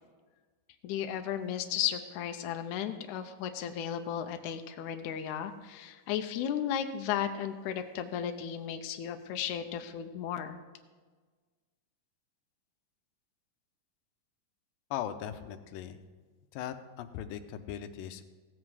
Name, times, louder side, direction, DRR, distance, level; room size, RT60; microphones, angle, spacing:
voice 1, 0.8-10.6, left 9 dB, 75° left, 7 dB, 2.0 m, -34 dB
voice 2, 14.9-16.0 16.5-18.3, left 10 dB, 90° left, 9 dB, 2.4 m, -39 dB
17.0 x 7.9 x 4.8 m, 1.4 s
omnidirectional pair, 3.9 m